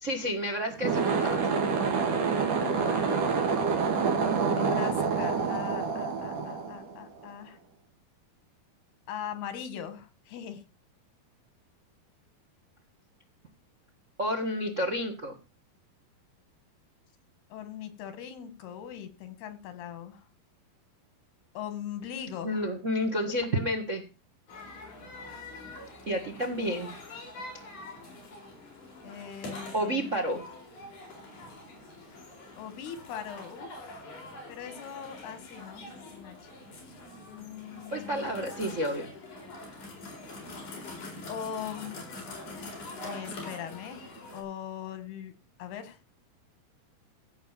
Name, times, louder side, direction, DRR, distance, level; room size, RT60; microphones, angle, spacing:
voice 1, 0.0-1.5 14.2-15.4 22.4-24.0 26.1-26.9 29.7-30.4 37.9-39.1, equal, 85° right, 6 dB, 0.6 m, -30 dB
sound 1, 0.7-7.2, right 5 dB, 55° right, 3.9 m, -27 dB
voice 2, 2.6-3.4 4.5-7.6 9.1-10.6 17.5-20.2 21.6-22.7 29.0-30.1 32.5-34.0 34.5-35.9 36.1-36.4 37.3-38.3 41.3-42.0 43.0-45.3 45.6-46.0, left 9 dB, 85° left, 10 dB, 3.8 m, -40 dB
sound 2, 24.5-44.4, left 2 dB, 50° left, 5.5 m, -44 dB
16.0 x 5.4 x 7.4 m, 0.32 s
omnidirectional pair, 4.5 m